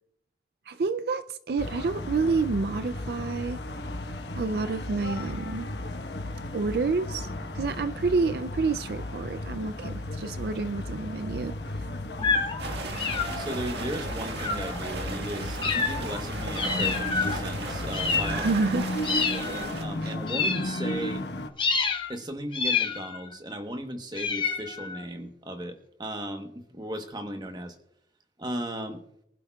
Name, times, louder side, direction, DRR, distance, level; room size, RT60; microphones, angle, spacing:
voice 1, 0.7-3.6 4.4-5.7 6.5-7.3 7.5-11.6 18.3-18.9 20.0-20.1, right 4 dB, 65° right, 11 dB, 0.4 m, -28 dB
sound 1, 1.6-21.5, left 1 dB, 80° left, 1.1 m, -35 dB
sound 2, 12.2-12.6 13.0-13.6 14.4-14.8 15.6-16.2 16.5-17.4 17.9-18.7 19.0-19.7 20.3-21.2 21.6-22.1 22.5-23.3 24.1-25.0, left 5 dB, 30° left, 1.0 m, -28 dB
sound 3, 12.6-19.8, right 2 dB, 80° right, 1.7 m, -37 dB
voice 2, 13.3-18.6 19.3-21.3 22.1-27.8 28.4-29.0, right 1 dB, 25° right, 6 dB, 1.1 m, -36 dB
24.0 x 11.5 x 2.3 m, 0.76 s
head